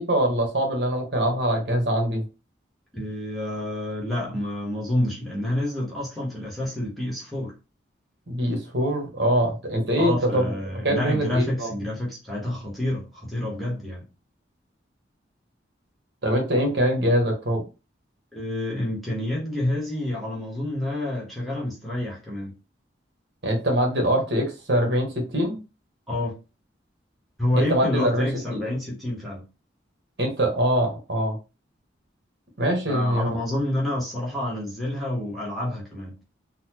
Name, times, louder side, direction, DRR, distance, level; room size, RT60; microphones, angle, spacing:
voice 1, 0.0-2.2 8.3-10.5 10.8-11.7 16.2-17.6 23.4-25.6 27.5-28.7 30.2-31.4 32.6-33.4, equal, 65° right, 1.2 m, -23 dB
voice 2, 2.9-7.5 10.0-14.1 18.3-22.5 26.1-26.3 27.4-29.4 32.9-36.2, left 1 dB, ahead, 1.0 m, -28 dB
4.0 x 2.1 x 2.9 m
head